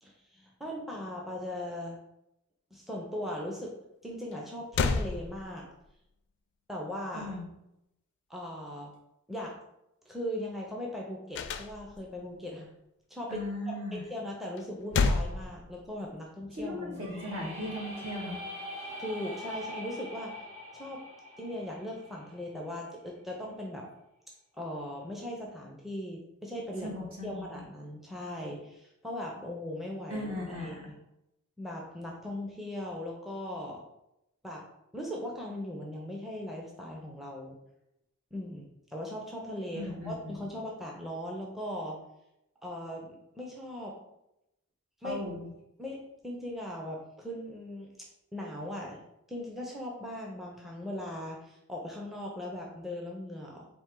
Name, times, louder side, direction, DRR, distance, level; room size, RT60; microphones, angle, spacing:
voice 1, 0.0-2.0 2.7-3.7 4.0-5.7 6.7-7.3 8.3-8.9 9.3-9.6 10.1-12.7 13.1-17.2 18.8-20.5 20.7-21.0 21.4-23.9 24.5-27.0 27.2-30.3 30.6-30.9 31.6-33.8 34.4-34.7 34.9-37.6 38.3-42.0 42.6-44.0 45.0-45.2 45.8-49.0 49.3-53.7, left 1 dB, ahead, -1 dB, 0.5 m, -39 dB
sound 1, 4.3-4.4 4.7-5.9 11.3-12.2 14.6-16.2, left 4 dB, 55° left, 0.3 m, -30 dB
voice 2, 7.1-7.4 13.3-14.0 16.5-18.4 26.8-27.6 30.1-30.9 39.7-40.5 45.0-45.5, left 1 dB, 65° right, -3 dB, 1.5 m, -37 dB
sound 2, 16.9-22.8, left 1 dB, 30° right, 1.4 m, -43 dB
4.3 x 2.8 x 3.7 m, 0.86 s
head